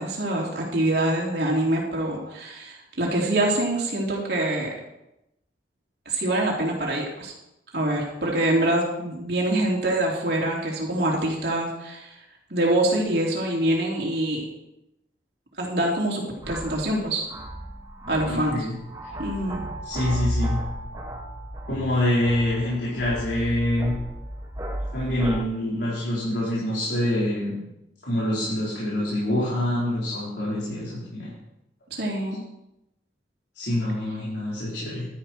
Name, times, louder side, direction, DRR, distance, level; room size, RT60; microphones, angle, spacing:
voice 1, 0.0-4.7 6.1-7.3 7.7-12.1 12.5-14.5 15.6-17.2 18.1-18.7 19.2-19.6 31.9-32.4, right 1 dB, 60° right, -2 dB, 3.5 m, -25 dB
sound 1, 16.4-25.4, equal, 20° right, 1.1 m, -34 dB
voice 2, 18.2-18.8 19.8-20.6 21.7-24.0 24.9-27.6 28.0-31.3 33.5-35.1, left 1 dB, 70° left, -8 dB, 4.5 m, -26 dB
12.5 x 10.5 x 4.6 m, 0.87 s
head